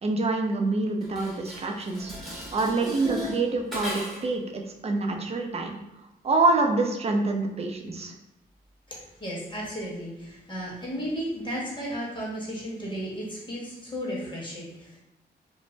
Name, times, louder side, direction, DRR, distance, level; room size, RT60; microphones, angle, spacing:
voice 1, 0.0-2.1 2.5-5.8 6.2-8.1, right 3 dB, 35° right, 2 dB, 0.5 m, -26 dB
Dishes pots and pans, 1.0-4.4, left 1 dB, ahead, 0.9 m, -37 dB
voice 2, 8.9-15.0, equal, 25° left, -5 dB, 1.2 m, -34 dB
2.5 x 2.0 x 3.2 m, 0.89 s
cardioid pair, 85°, 17 cm